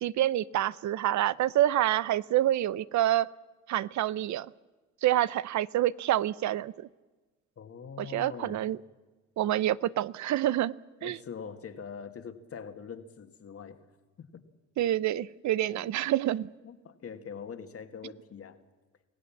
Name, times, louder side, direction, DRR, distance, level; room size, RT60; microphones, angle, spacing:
voice 1, 0.0-3.3 3.7-4.5 5.0-6.9 8.0-8.8 9.4-10.7 11.0-11.2 14.8-16.5, right 13 dB, 70° right, 19 dB, 0.6 m, -27 dB
voice 2, 7.6-8.6 11.0-13.8 14.2-14.4 15.8-15.9 16.6-18.6, left 6 dB, 50° left, 8 dB, 1.8 m, -43 dB
25.0 x 17.0 x 7.3 m, 1.3 s
cardioid pair, 90°, 30 cm